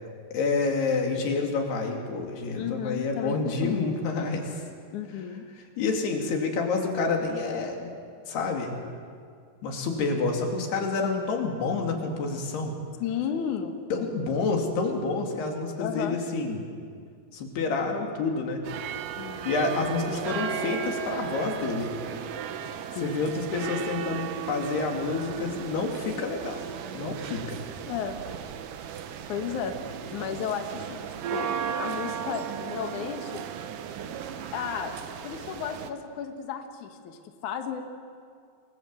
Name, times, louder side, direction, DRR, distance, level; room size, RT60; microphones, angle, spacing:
voice 1, 0.3-4.6 5.8-7.9 8.3-8.7 9.6-12.7 13.9-16.6 17.3-18.6 19.4-21.9 23.0-26.6 26.9-27.6, left 4 dB, 75° left, 2 dB, 4.8 m, -28 dB
voice 2, 2.6-3.9 4.9-5.5 11.0-11.2 13.0-13.7 15.8-16.2 19.2-19.5 23.0-23.2 27.9-28.2 29.3-29.8 30.1-31.5 31.8-33.4 34.5-34.9 35.2-37.8, left 8 dB, 60° left, 5 dB, 2.5 m, -33 dB
sound 1, 18.6-35.9, right 8 dB, 70° right, 2.4 m, -35 dB
29.0 x 22.0 x 7.8 m, 2.2 s
omnidirectional pair, 4.7 m